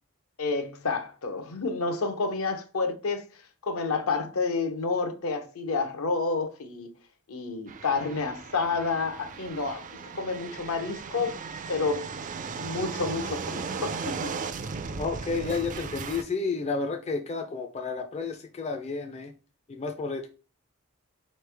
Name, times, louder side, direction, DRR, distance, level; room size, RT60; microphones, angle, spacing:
voice 1, 0.4-3.3 3.6-6.9 7.3-9.9 10.1-11.4 11.7-12.1 12.6-14.3, left 4 dB, 70° left, 0.7 m, -29 dB
sound 1, 7.7-16.2, right 5 dB, 35° right, 0.4 m, -37 dB
voice 2, 15.0-19.3 19.7-20.3, left 4 dB, 30° left, 0.4 m, -31 dB
4.2 x 3.2 x 3.3 m
head